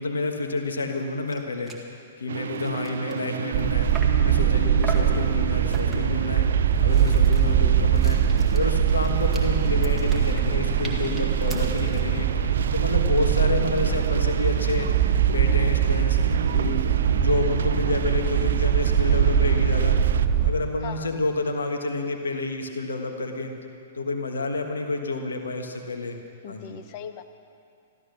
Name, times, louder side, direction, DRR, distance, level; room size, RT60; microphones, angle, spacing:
voice 1, 0.0-1.7 2.2-3.9 4.2-6.4 6.8-8.2 8.5-12.3 12.7-14.9 15.3-16.2 16.5-20.0 20.4-23.5 23.9-26.2 26.5-26.8, left 3 dB, 85° left, 4 dB, 1.4 m, -29 dB
sound 1, 1.0-1.1 1.3-1.4 1.7-1.9 2.3-4.3 4.8-5.2 5.7-6.2 6.7-12.1, right 4 dB, 5° right, 2.0 m, -41 dB
sound 2, 2.3-20.3, right 8 dB, 75° right, 0.4 m, -34 dB
sound 3, 3.5-20.5, right 8 dB, 45° right, 1.2 m, -22 dB
voice 2, 26.4-27.2, left 8 dB, 45° left, 8 dB, 1.1 m, -38 dB
14.0 x 13.5 x 6.7 m, 2.5 s
hypercardioid pair, 120°, 0 cm